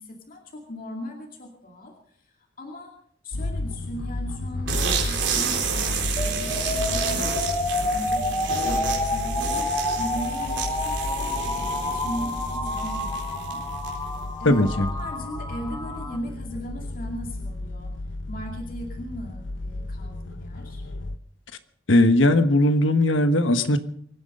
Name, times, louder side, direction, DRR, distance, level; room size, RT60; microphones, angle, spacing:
voice 1, 0.0-2.9 3.2-7.3 7.7-9.7 10.0-17.9 18.3-20.8, equal, 50° left, 1 dB, 2.5 m, -38 dB
sound 1, 3.3-21.2, left 2 dB, 70° left, 0.9 m, -33 dB
sound 2, 4.7-14.2, right 6 dB, 70° right, 4.0 m, -31 dB
sound 3, 6.2-16.2, left 2 dB, 15° left, 2.0 m, -29 dB
voice 2, 14.4-14.9 21.9-23.8, left 1 dB, 90° left, 10 dB, 1.3 m, -18 dB
25.0 x 9.6 x 5.4 m, 0.65 s
head